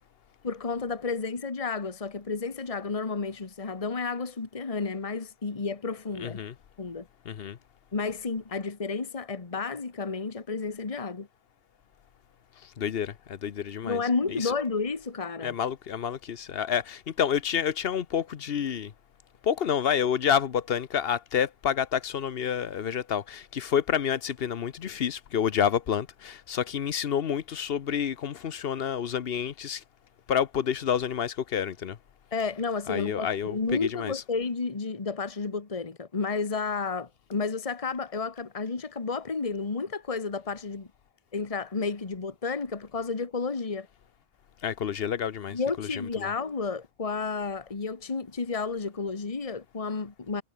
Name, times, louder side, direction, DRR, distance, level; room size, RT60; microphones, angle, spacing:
voice 1, 0.4-6.4 6.8-7.1 7.9-11.3 13.8-15.5 32.3-40.9 41.3-43.9 45.5-50.4, left 4 dB, 35° left, 1.4 m, -31 dB
voice 2, 6.2-6.5 7.2-7.6 12.8-14.0 14.3-14.5 15.4-18.9 19.4-29.8 30.3-32.0 32.9-34.1 44.6-46.3, left 8 dB, 70° left, 1.0 m, -29 dB
omnidirectional pair, 1.1 m